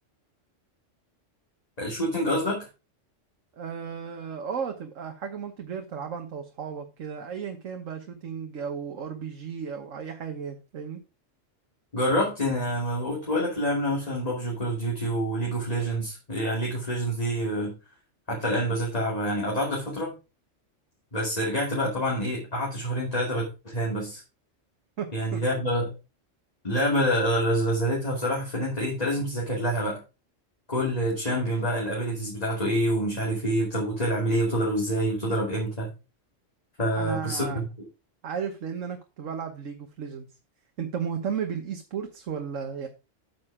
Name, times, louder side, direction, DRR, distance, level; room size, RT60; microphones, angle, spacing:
voice 1, 1.8-2.7 11.9-17.7 18.3-20.1 21.1-24.2 25.1-25.9 26.6-30.0 30.7-35.9 36.8-37.6, equal, 30° left, 2.9 m, -27 dB
voice 2, 3.5-11.0 25.0-25.4 37.0-37.6 38.2-40.3 40.8-42.9, right 7 dB, 85° right, 1.5 m, -34 dB
8.9 x 6.3 x 4.9 m
omnidirectional pair, 1.3 m